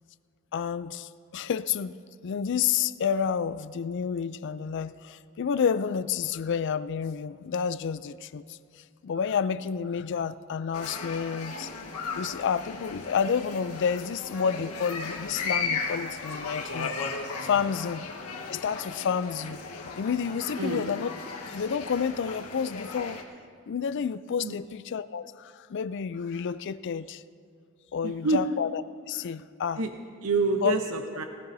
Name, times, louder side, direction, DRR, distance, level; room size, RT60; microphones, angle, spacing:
voice 1, 0.5-1.9 2.2-8.6 9.0-11.7 12.1-17.0 17.4-19.6 19.9-21.1 21.5-23.2 23.7-27.2 27.9-28.8 29.1-29.8 30.6-30.8, left 7 dB, 55° left, 0.4 m, -30 dB
sound 1, 10.7-23.2, left 4 dB, 85° left, 1.3 m, -36 dB
voice 2, 28.0-28.4 29.8-29.9 30.2-31.2, right 3 dB, 70° right, 0.7 m, -27 dB
20.0 x 14.5 x 2.7 m
head